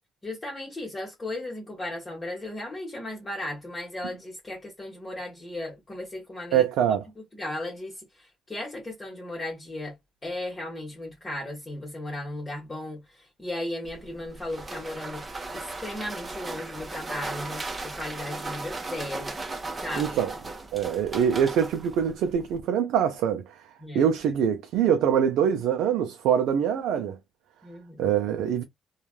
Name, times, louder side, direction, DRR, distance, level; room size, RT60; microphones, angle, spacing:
voice 1, 0.2-6.7 7.3-10.0 10.2-15.2 15.5-19.3 19.8-20.2 23.8-24.0 27.6-28.1, left 1 dB, 25° left, 1.0 m, -36 dB
voice 2, 6.5-7.1 20.0-20.3 20.7-23.7 23.9-27.2 28.0-28.6, right 8 dB, 90° right, 0.4 m, -24 dB
sound 1, 13.8-22.6, right 2 dB, 25° right, 0.8 m, -37 dB
3.1 x 2.3 x 2.3 m
cardioid pair, 90°, 0 cm